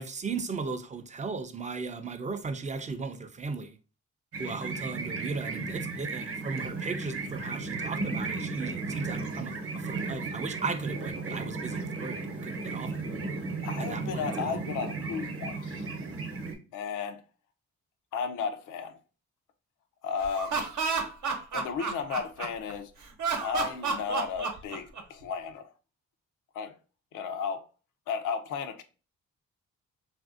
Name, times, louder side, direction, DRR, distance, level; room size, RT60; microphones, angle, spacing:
voice 1, 0.0-3.8 4.4-12.2 12.4-12.9 13.8-14.5, right 4 dB, 25° right, 0.4 m, -36 dB
sound 1, 4.3-16.6, right 3 dB, 45° right, 0.8 m, -35 dB
voice 2, 13.6-15.9 16.7-17.2 18.1-19.0 20.0-20.6 21.5-22.9 23.4-25.7 26.5-26.8 27.1-27.7 28.1-28.8, left 6 dB, 90° left, 0.5 m, -34 dB
Laughter, 20.2-22.7 23.2-25.2, right 5 dB, 75° right, 0.8 m, -31 dB
3.2 x 2.5 x 2.4 m
cardioid pair, 80°, 30 cm